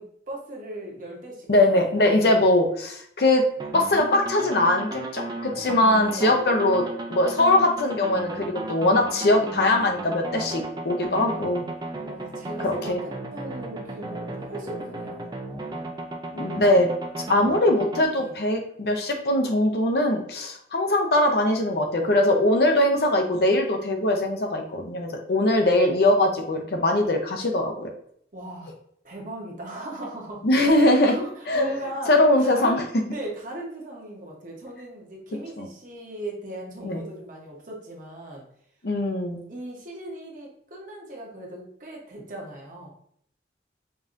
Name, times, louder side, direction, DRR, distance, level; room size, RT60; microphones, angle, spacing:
voice 1, 0.0-1.8 5.9-6.3 12.0-15.3 18.1-18.3 28.3-28.7 29.0-30.4 30.7-32.1 32.4-38.4 39.5-42.9, right 1 dB, 45° right, -2 dB, 1.0 m, -38 dB
voice 2, 1.5-3.4 3.7-6.8 7.1-11.6 12.6-13.0 16.3-16.9 17.2-27.9 30.4-31.2 31.5-31.7 32.1-32.8 35.6-35.7 36.8-37.0 38.8-39.4, left 1 dB, 60° left, 3 dB, 0.6 m, -21 dB
sound 1, 3.6-18.0, right 2 dB, 25° right, 0.4 m, -35 dB
5.2 x 2.7 x 2.5 m, 0.66 s
head